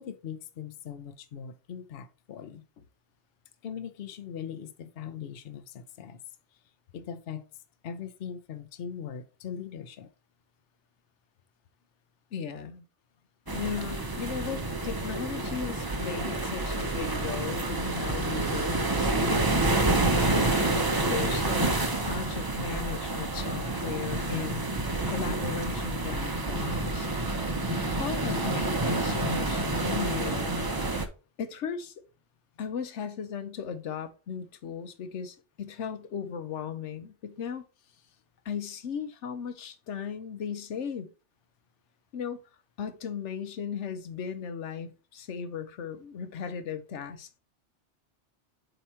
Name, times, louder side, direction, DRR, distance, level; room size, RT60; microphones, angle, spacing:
voice 1, 0.0-2.6 3.6-6.2 6.9-7.5 7.8-10.1, left 8 dB, 60° left, 0.8 m, -40 dB
voice 2, 12.3-12.8 13.5-19.6 20.2-20.6 21.0-21.7 22.0-24.6 25.1-27.1 27.7-30.5 31.4-31.9 32.6-37.6 38.4-41.1 42.1-42.4 42.8-47.4, left 7 dB, 85° left, 1.1 m, -36 dB
sound 1, 13.5-31.1, right 2 dB, 25° right, 0.6 m, -28 dB
7.8 x 3.0 x 4.3 m
omnidirectional pair, 1.2 m